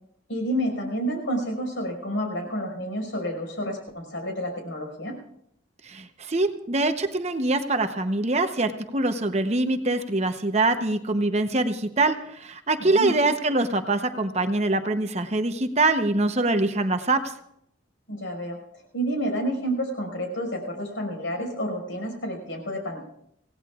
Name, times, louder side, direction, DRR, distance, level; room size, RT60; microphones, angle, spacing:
voice 1, 0.3-5.2 12.8-13.1 18.1-18.6 18.9-23.0, equal, 75° left, 2 dB, 5.3 m, -29 dB
voice 2, 5.8-17.2, right 2 dB, 35° right, 7 dB, 0.8 m, -24 dB
26.5 x 17.0 x 2.4 m, 0.72 s
head